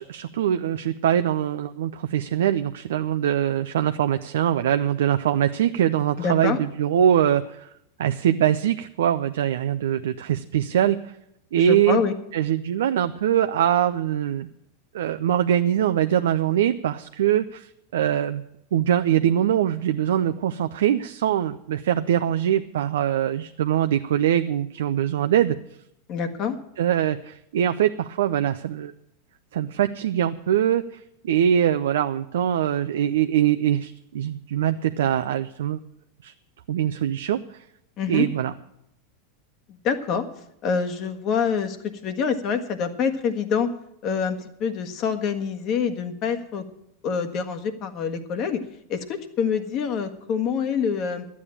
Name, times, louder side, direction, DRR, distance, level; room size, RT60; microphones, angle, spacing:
voice 1, 0.0-7.7 8.0-11.1 11.5-12.0 12.3-14.5 14.9-18.4 18.7-25.6 26.8-28.9 29.5-35.8 36.2-36.3 36.7-37.6 38.1-38.5, right 10 dB, 75° right, 9 dB, 0.5 m, -23 dB
voice 2, 6.2-6.6 11.6-12.1 26.1-26.6 38.0-38.3 39.7-40.2 40.6-43.7 44.0-46.6 47.0-48.6 48.9-51.3, left 6 dB, 45° left, 8 dB, 1.5 m, -26 dB
12.5 x 8.4 x 8.7 m, 0.78 s
hypercardioid pair, 95°, 0 cm